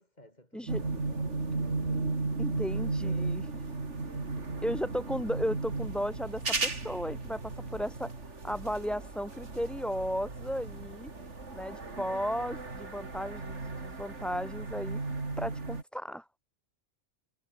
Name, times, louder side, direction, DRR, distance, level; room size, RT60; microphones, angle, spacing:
voice 1, 0.0-2.1 2.5-3.5, left 1 dB, 35° left, 7.5 m, -55 dB
sound 1, 0.7-15.8, right 3 dB, 85° right, 3.5 m, -35 dB
voice 2, 2.4-3.4 4.6-8.1 8.4-11.1 11.5-15.0 15.4-16.2, equal, ahead, 4.4 m, -35 dB
omnidirectional pair, 1.2 m